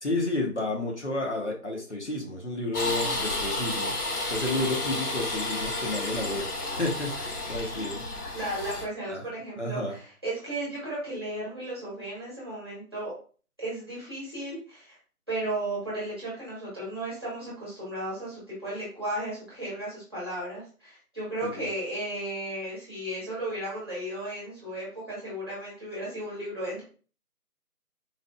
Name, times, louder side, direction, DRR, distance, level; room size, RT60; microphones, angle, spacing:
voice 1, 0.0-3.9 4.3-8.0 9.1-9.2 9.6-9.9 21.4-21.7, left 2 dB, 50° left, 0 dB, 0.8 m, -31 dB
sound 1, 2.7-8.8, left 2 dB, 85° left, 1.2 m, -31 dB
voice 2, 8.3-13.1 13.6-15.0 15.3-26.8, right 1 dB, 15° right, -8 dB, 1.1 m, -35 dB
4.1 x 2.4 x 2.2 m, 0.39 s
figure-of-eight pair, 170°, 45 cm